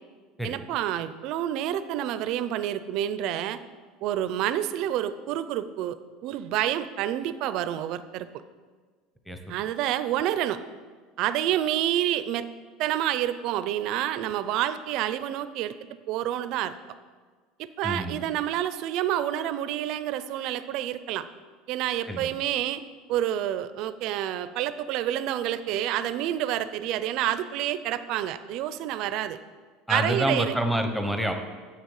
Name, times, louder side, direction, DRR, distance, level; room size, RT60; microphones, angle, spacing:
voice 1, 0.4-3.6 4.0-6.0 6.2-8.3 9.5-10.6 11.2-12.5 12.8-15.7 16.1-16.7 17.6-21.3 21.7-22.8 23.1-29.4 29.9-30.5, right 12 dB, 50° right, 13 dB, 0.5 m, -28 dB
voice 2, 17.8-18.3 22.1-22.3 29.9-31.3, right 1 dB, ahead, 5 dB, 0.8 m, -27 dB
7.8 x 6.4 x 7.1 m, 1.5 s
cardioid pair, 155°, 0 cm